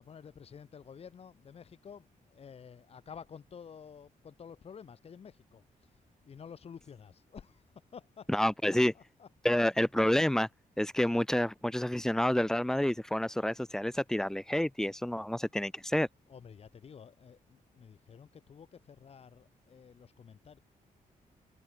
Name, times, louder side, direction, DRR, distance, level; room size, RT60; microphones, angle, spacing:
voice 1, 0.0-9.3 16.3-20.6, left 7 dB, 45° left, 5.3 m, -51 dB
voice 2, 8.3-8.9 9.4-10.5 10.8-16.1, left 1 dB, 5° left, 0.7 m, -29 dB
wide cardioid pair, 175°, 15 cm